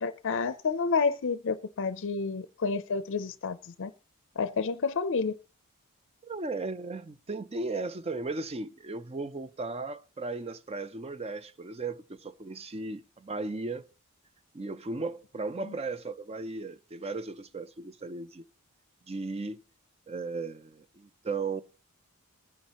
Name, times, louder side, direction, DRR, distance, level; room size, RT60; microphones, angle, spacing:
voice 1, 0.0-3.9 4.4-5.3 15.6-15.7, left 4 dB, 55° left, 0.5 m, -30 dB
voice 2, 6.2-13.9 14.5-18.4 19.1-19.6 20.1-21.6, right 3 dB, 25° right, 0.5 m, -36 dB
20.0 x 9.7 x 3.0 m
head